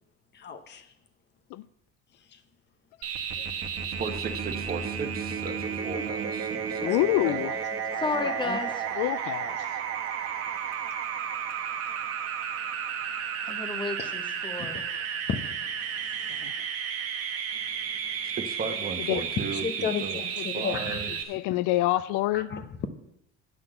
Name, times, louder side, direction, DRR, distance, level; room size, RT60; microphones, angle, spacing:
voice 1, 0.3-0.9 2.3-2.4 3.4-3.5 3.7-3.9 6.8-8.6 14.0-14.1 14.6-16.5 17.7-18.4 19.2-19.3 19.5-21.2 21.5-21.6 22.3-22.9, left 6 dB, 35° left, 0.9 m, -36 dB
sound 1, 3.0-21.2, right 7 dB, 50° right, 1.2 m, -33 dB
voice 2, 4.0-7.4 18.4-20.2 20.5-21.1, right 5 dB, 30° right, 1.0 m, -36 dB
voice 3, 5.7-6.0 8.0-8.7 13.5-14.8, left 3 dB, 15° left, 1.1 m, -33 dB
voice 4, 6.8-7.5 9.0-9.6 16.4-16.5 19.1-19.2 20.6-20.7 21.3-22.5, left 16 dB, 90° left, 0.5 m, -26 dB
9.1 x 5.9 x 7.6 m
cardioid pair, 150°, 29 cm